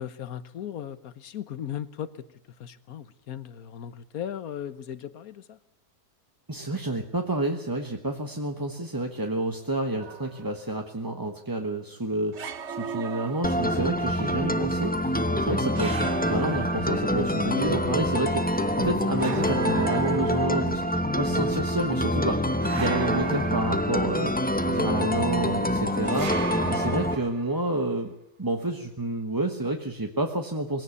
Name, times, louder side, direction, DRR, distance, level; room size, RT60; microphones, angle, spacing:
voice 1, 0.0-2.3 2.6-5.6 25.8-26.0, left 9 dB, 70° left, 14 dB, 1.4 m, -37 dB
voice 2, 6.5-12.4 12.7-24.3 24.7-26.3 26.7-28.1 28.4-30.8, right 2 dB, 15° right, 4 dB, 1.1 m, -29 dB
sound 1, 10.0-10.6 12.3-14.0 15.7-17.4 19.2-20.9 22.6-24.4 26.0-27.7, right 7 dB, 50° right, 1.2 m, -36 dB
sound 2, 13.4-27.1, equal, 10° left, 0.6 m, -26 dB
21.0 x 16.5 x 8.4 m, 0.74 s
omnidirectional pair, 1.6 m